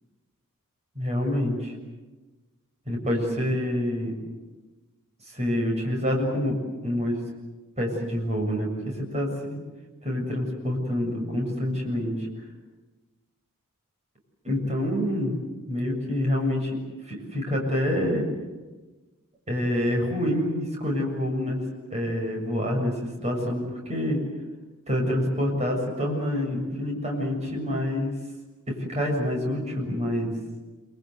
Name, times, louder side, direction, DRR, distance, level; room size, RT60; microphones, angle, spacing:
voice 1, 1.0-1.7 2.9-4.1 5.3-6.6 6.8-7.2 7.8-9.6 10.0-12.1 14.4-15.3 15.7-16.7 17.1-18.3 19.5-21.6 21.9-22.9 23.2-24.2 24.9-28.1 28.9-30.3, left 1 dB, 30° right, 0 dB, 7.3 m, -27 dB
27.0 x 25.0 x 8.1 m, 1.2 s
head